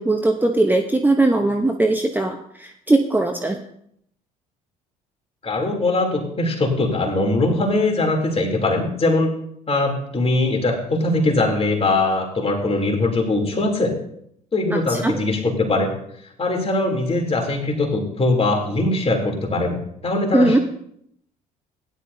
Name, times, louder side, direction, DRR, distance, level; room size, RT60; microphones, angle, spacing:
voice 1, 0.0-3.6 14.7-15.1 20.3-20.6, right 2 dB, 10° right, 4 dB, 0.9 m, -19 dB
voice 2, 5.4-9.3 9.7-14.0 14.5-15.9 16.4-20.6, left 2 dB, 30° left, 1 dB, 3.2 m, -21 dB
16.5 x 10.5 x 2.7 m, 0.70 s
hypercardioid pair, 55°, 19 cm